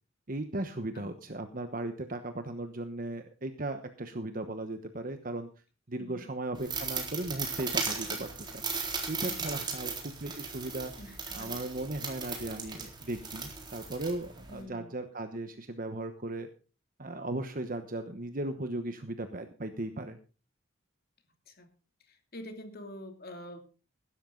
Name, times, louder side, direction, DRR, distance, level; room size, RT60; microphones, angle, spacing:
voice 1, 0.3-5.5 5.9-8.6 9.1-10.9 11.3-16.5 17.0-20.2, right 2 dB, 45° right, 8 dB, 1.1 m, -37 dB
voice 2, 6.0-6.3 9.2-9.8 11.0-11.5 14.5-14.9 21.5-21.7 22.1-23.6, left 1 dB, 50° left, 5 dB, 2.8 m, -46 dB
sound 1, 6.5-14.6, right 4 dB, 20° right, 3.9 m, -37 dB
16.5 x 12.5 x 3.9 m, 0.35 s
head